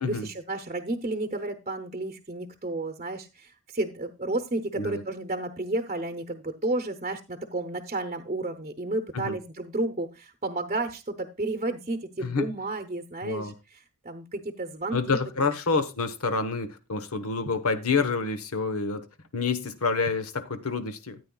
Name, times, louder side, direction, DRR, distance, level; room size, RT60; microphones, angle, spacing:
voice 1, 0.0-15.5, right 2 dB, 30° right, 0.8 m, -32 dB
voice 2, 13.2-13.5 14.9-19.1 19.3-21.2, left 4 dB, 85° left, 1.2 m, -28 dB
14.0 x 9.0 x 2.3 m
head